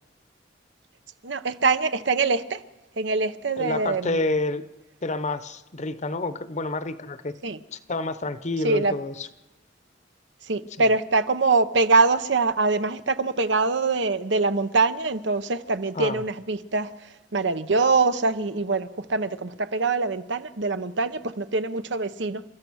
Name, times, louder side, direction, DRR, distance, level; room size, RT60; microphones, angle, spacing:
voice 1, 1.2-2.6 3.0-4.3 7.4-7.6 8.6-9.0 10.4-22.4, right 3 dB, 70° right, 0.9 m, -24 dB
voice 2, 3.6-4.6 5.0-7.4 7.7-9.3 15.9-16.2, left 2 dB, 40° left, 0.9 m, -29 dB
30.0 x 13.5 x 6.3 m
head